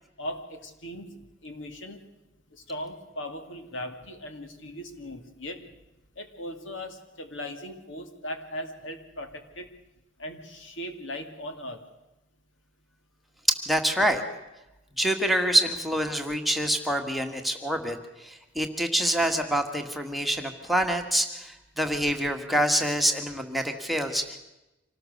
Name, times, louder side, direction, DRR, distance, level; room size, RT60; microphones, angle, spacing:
voice 1, 0.2-2.0 2.7-5.6 6.2-9.7 10.2-11.8, left 1 dB, 70° left, 6 dB, 2.4 m, -38 dB
voice 2, 13.5-14.2 15.0-24.4, right 1 dB, ahead, 3 dB, 1.7 m, -26 dB
26.0 x 18.5 x 6.7 m, 0.96 s
head